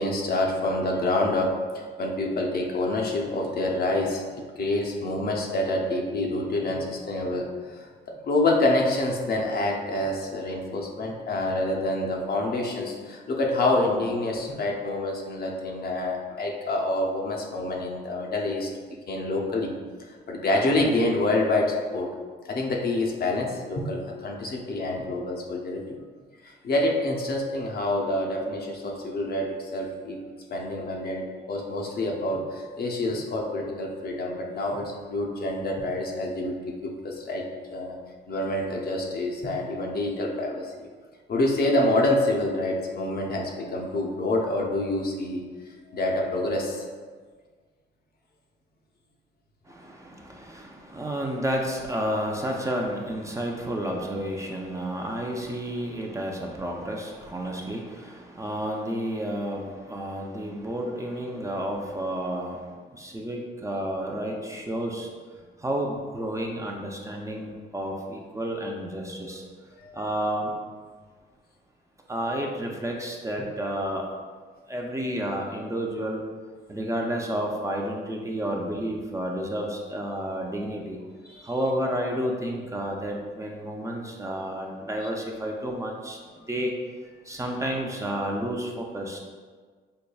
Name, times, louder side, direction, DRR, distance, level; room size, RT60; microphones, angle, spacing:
voice 1, 0.0-18.7 19.1-19.7 20.3-22.1 22.5-25.9 26.4-30.2 30.5-38.0 38.3-40.9 41.3-45.4 45.9-46.8 57.5-57.6 69.8-70.0 81.3-81.5, left 2 dB, 55° left, 0 dB, 0.6 m, -27 dB
voice 2, 49.7-65.1 65.6-69.4 69.9-70.5 72.1-74.1 74.7-76.2 76.7-81.0 81.4-86.7 87.2-89.2, equal, 15° right, 0 dB, 0.5 m, -31 dB
5.4 x 2.2 x 2.3 m, 1.5 s
cardioid pair, 70°, 19 cm